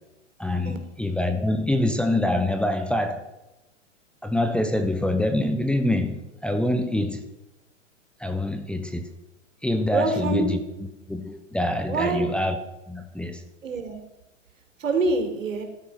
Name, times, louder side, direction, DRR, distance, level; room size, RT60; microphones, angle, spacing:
voice 1, 0.4-3.2 4.2-7.3 8.2-9.0 9.6-10.6 11.1-12.6 12.9-13.4, left 1 dB, 5° left, 1.0 m, -25 dB
voice 2, 9.9-10.4 11.9-12.2 13.6-14.0 14.8-15.6, right 3 dB, 85° right, 4.2 m, -25 dB
14.0 x 12.5 x 5.8 m
hypercardioid pair, 130°, 38 cm